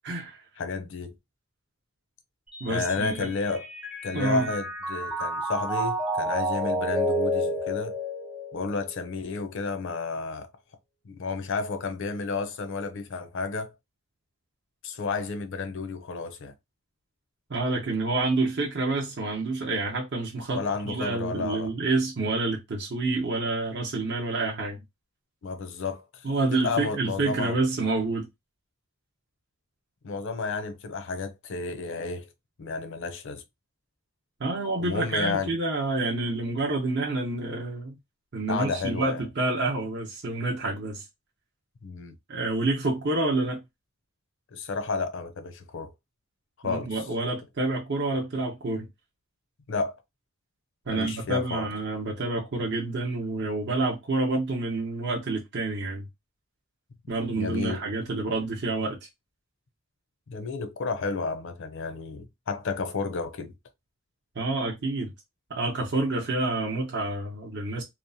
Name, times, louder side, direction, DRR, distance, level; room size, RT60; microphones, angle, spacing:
voice 1, 0.0-0.4 2.6-3.3 4.1-4.5 17.5-24.8 26.2-28.3 34.4-38.0 38.3-41.0 42.3-43.6 46.6-48.9 50.9-56.1 57.1-59.0 64.4-65.1 65.5-67.8, right 2 dB, 50° right, 0.7 m, -28 dB
voice 2, 0.6-1.2 2.7-3.7 4.0-8.0 8.5-10.5 11.0-13.7 14.8-16.5 20.5-21.7 25.4-26.3 26.5-27.6 30.0-32.3 32.6-33.4 34.8-35.6 38.5-39.2 41.8-42.2 44.5-45.9 46.6-47.0 49.7-50.0 50.9-51.7 57.4-57.8 60.3-63.5, left 4 dB, 60° left, 0.5 m, -31 dB
Mallet percussion, 2.5-9.0, equal, 5° right, 0.5 m, -30 dB
2.8 x 2.0 x 2.6 m
head